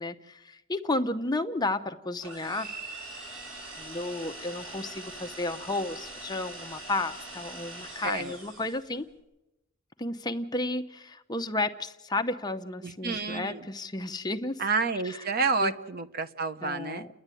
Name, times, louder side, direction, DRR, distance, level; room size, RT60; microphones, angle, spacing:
voice 1, 0.0-3.0 3.8-9.1 10.0-14.6 15.0-15.2 15.6-15.7 16.6-17.1, left 2 dB, 20° left, 8 dB, 0.8 m, -32 dB
sound 1, 2.2-8.9, right 2 dB, 80° right, 7.9 m, -43 dB
voice 2, 8.0-8.3 12.8-13.7 14.6-17.1, right 4 dB, 45° right, 11 dB, 0.8 m, -29 dB
30.0 x 11.0 x 9.1 m, 0.98 s
head